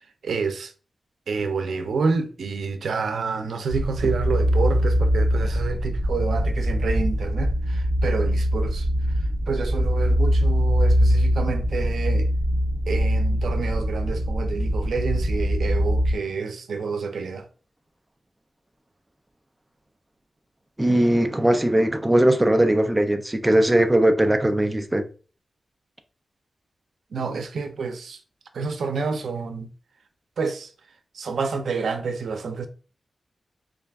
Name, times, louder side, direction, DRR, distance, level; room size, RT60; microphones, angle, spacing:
voice 1, 0.2-0.7 1.3-8.9 9.5-12.3 12.9-17.5 27.1-28.2 28.5-29.7 30.4-30.7 31.1-32.7, right 4 dB, 90° right, 0.5 m, -28 dB
sound 1, 3.7-16.2, equal, 50° right, 1.3 m, -22 dB
voice 2, 20.8-25.0, right 1 dB, 15° right, 0.4 m, -19 dB
3.9 x 2.4 x 3.4 m
wide cardioid pair, 145°, 0 cm